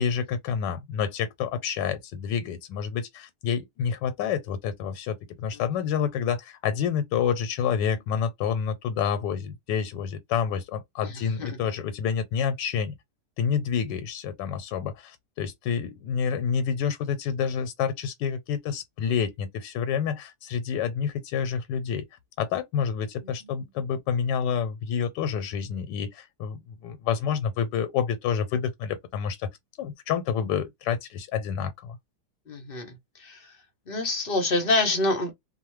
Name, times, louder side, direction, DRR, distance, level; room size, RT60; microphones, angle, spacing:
voice 1, 0.0-12.9 13.4-22.1 22.4-29.5 29.8-32.0, left 7 dB, 85° left, 1.2 m, -28 dB
voice 2, 11.0-11.6 32.5-33.5 33.9-35.3, left 2 dB, 50° left, 0.6 m, -27 dB
2.9 x 2.1 x 3.0 m
omnidirectional pair, 1.8 m